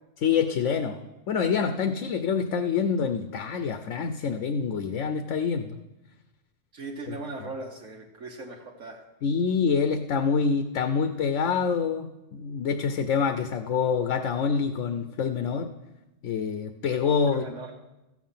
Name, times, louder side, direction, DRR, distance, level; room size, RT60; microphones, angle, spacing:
voice 1, 0.2-1.0 1.3-5.8 7.1-7.2 9.2-15.7 16.2-17.4, left 6 dB, 80° left, 8 dB, 1.0 m, -26 dB
voice 2, 6.7-9.0 17.3-17.7, right 2 dB, 80° right, -1 dB, 1.5 m, -38 dB
14.5 x 7.2 x 5.6 m, 0.97 s
omnidirectional pair, 1.3 m